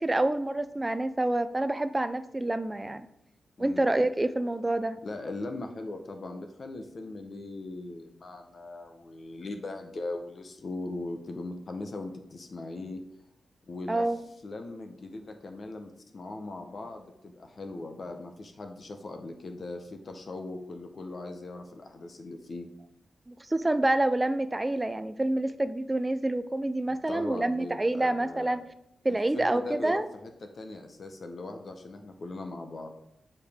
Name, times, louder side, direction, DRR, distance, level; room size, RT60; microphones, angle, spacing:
voice 1, 0.0-3.0 3.6-5.0 13.9-14.2 23.3-28.6 29.0-30.1, right 1 dB, 15° right, 11 dB, 0.4 m, -27 dB
voice 2, 3.6-3.9 5.0-13.0 13.7-14.0 14.4-22.7 26.9-28.6 29.1-32.9, left 2 dB, 50° left, 5 dB, 0.7 m, -39 dB
7.2 x 4.8 x 3.5 m, 0.80 s
wide cardioid pair, 110°, 0 cm